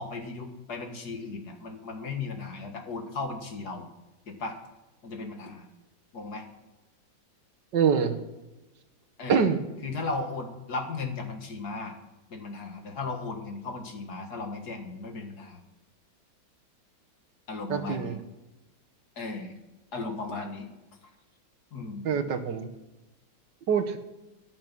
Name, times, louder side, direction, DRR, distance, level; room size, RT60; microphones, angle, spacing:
voice 1, 0.0-3.9 4.3-4.6 5.0-5.7 6.1-6.5 9.2-9.6 9.8-11.9 12.3-15.6 17.5-18.2 19.2-19.5 19.9-20.7 21.7-22.1, left 3 dB, 55° left, 4 dB, 2.2 m, -36 dB
voice 2, 7.7-8.2 9.3-9.6 17.7-18.1 22.1-22.7 23.7-24.0, right 6 dB, 70° right, 6 dB, 1.7 m, -24 dB
13.5 x 11.0 x 6.1 m, 1.0 s
omnidirectional pair, 2.0 m